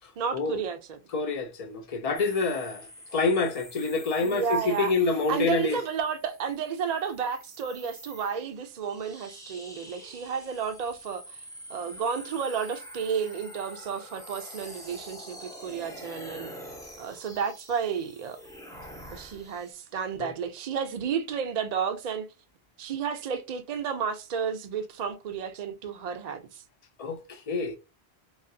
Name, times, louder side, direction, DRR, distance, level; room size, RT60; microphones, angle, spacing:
voice 1, 0.2-1.0 4.2-4.9 5.3-11.4 11.7-16.5 17.0-18.4 19.1-22.3 22.8-26.6, right 6 dB, 50° right, 0.5 m, -32 dB
voice 2, 1.1-5.8 20.2-20.3 27.0-27.8, left 3 dB, 55° left, 0.4 m, -27 dB
sound 1, 2.1-19.7, equal, 5° left, 0.6 m, -46 dB
3.1 x 2.4 x 2.6 m
omnidirectional pair, 1.1 m